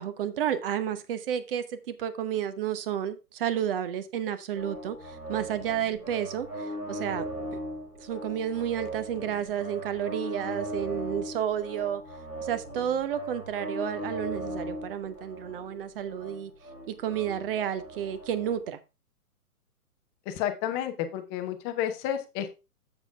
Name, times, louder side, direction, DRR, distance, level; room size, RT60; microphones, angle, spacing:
voice 1, 0.0-7.6 8.0-12.0 12.4-16.5 16.9-18.8, right 9 dB, 35° right, 1.0 m, -31 dB
sound 1, 4.5-18.6, right 1 dB, 85° right, 5.6 m, -39 dB
voice 2, 20.3-22.6, left 10 dB, 15° left, 0.7 m, -31 dB
7.5 x 7.1 x 3.5 m
figure-of-eight pair, 125°, 46 cm